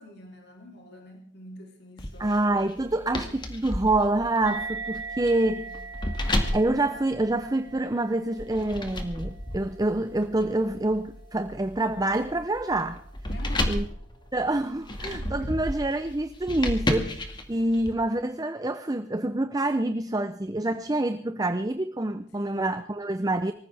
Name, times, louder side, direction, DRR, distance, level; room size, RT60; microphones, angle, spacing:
voice 1, 0.0-2.6 5.2-5.8 13.3-13.8 15.1-15.7 22.4-22.7, left 1 dB, 55° left, 3.5 m, -46 dB
sound 1, 2.0-7.8 8.4-17.9, left 1 dB, 25° left, 2.1 m, -33 dB
voice 2, 2.2-5.6 6.5-13.0 13.7-13.9 14.3-17.2 17.5-23.5, right 2 dB, 20° right, 0.7 m, -26 dB
sound 2, 4.4-11.3, right 4 dB, 70° right, 2.1 m, -41 dB
24.5 x 15.0 x 3.5 m
head